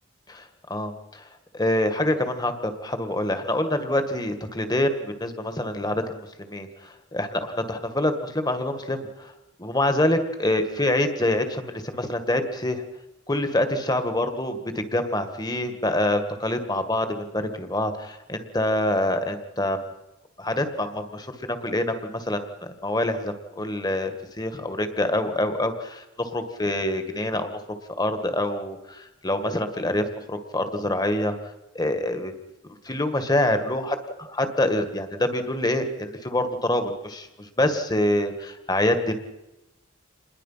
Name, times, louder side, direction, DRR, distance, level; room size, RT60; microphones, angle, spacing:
voice 1, 0.7-1.2 1.5-9.3 9.6-12.8 13.3-19.9 20.4-24.1 24.4-27.5 28.0-31.3 31.8-32.3 32.9-34.0 34.3-39.2, left 1 dB, 20° left, 8 dB, 1.9 m, -26 dB
27.5 x 21.0 x 5.8 m, 0.96 s
head